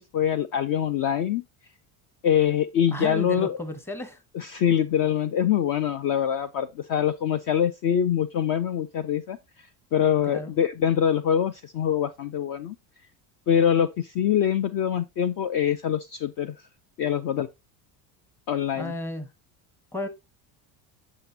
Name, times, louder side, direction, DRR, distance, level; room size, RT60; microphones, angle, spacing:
voice 1, 0.0-1.4 2.2-3.6 4.3-9.4 9.9-12.8 13.5-16.6 17.0-17.5 18.5-18.9, left 9 dB, 45° left, 0.4 m, -24 dB
voice 2, 2.9-4.2 10.3-10.5 18.7-19.3 19.9-20.1, left 1 dB, 5° left, 0.8 m, -33 dB
7.6 x 6.1 x 2.7 m
cardioid pair, 125°, 50 cm